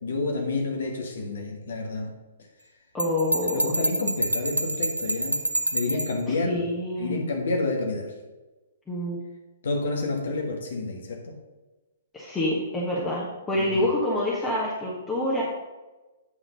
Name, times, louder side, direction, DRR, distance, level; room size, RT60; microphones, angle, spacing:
voice 1, 0.0-2.1 3.5-5.4 5.7-6.6 7.0-8.1 9.6-11.4 13.6-13.9, left 3 dB, 60° left, 2 dB, 1.2 m, -29 dB
voice 2, 2.9-3.7 6.3-7.2 8.9-9.2 12.1-15.4, left 1 dB, 10° left, -6 dB, 1.3 m, -27 dB
Bell, 3.0-6.2, right 1 dB, 85° right, 0.5 m, -27 dB
8.6 x 3.8 x 5.3 m, 1.2 s
figure-of-eight pair, 120°, 0 cm